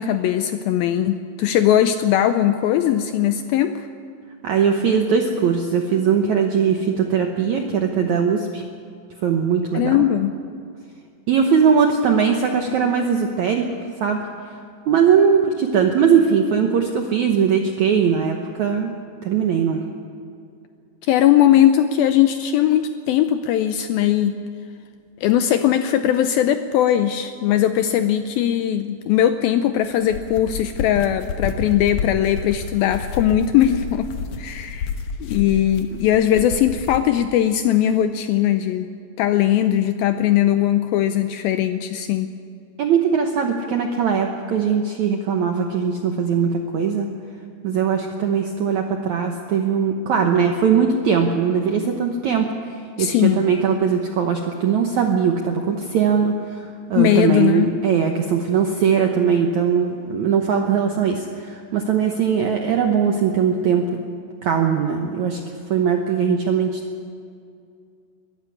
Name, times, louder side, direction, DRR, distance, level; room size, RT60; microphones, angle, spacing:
voice 1, 0.0-3.9 9.7-10.3 21.1-24.3 25.2-34.1 34.4-34.9 35.2-38.9 39.2-42.3 53.0-53.4 57.0-57.7, left 11 dB, 85° left, 9 dB, 2.2 m, -19 dB
voice 2, 4.4-8.6 9.2-10.1 11.3-13.7 14.0-14.2 14.9-18.9 19.2-19.8 35.9-36.0 42.8-47.1 47.6-56.6 56.9-63.9 64.4-65.4 65.7-66.8, right 6 dB, 80° right, 3 dB, 1.7 m, -20 dB
sound 1, 29.9-37.1, left 5 dB, 65° left, 2.1 m, -30 dB
22.0 x 12.0 x 9.8 m, 2.4 s
omnidirectional pair, 4.8 m